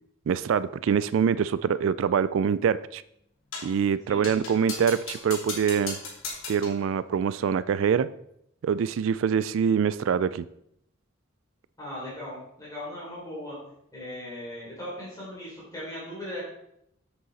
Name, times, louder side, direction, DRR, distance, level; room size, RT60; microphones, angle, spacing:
voice 1, 0.3-3.0 3.6-6.0 6.5-8.1 8.6-10.4, right 7 dB, 70° right, 17 dB, 0.3 m, -24 dB
sound 1, 3.5-3.8 4.2-6.8, left 4 dB, 75° left, 2.9 m, -37 dB
voice 2, 11.8-13.6 13.9-16.4, left 1 dB, 15° left, -7 dB, 3.7 m, -38 dB
8.0 x 7.9 x 4.1 m, 0.77 s
head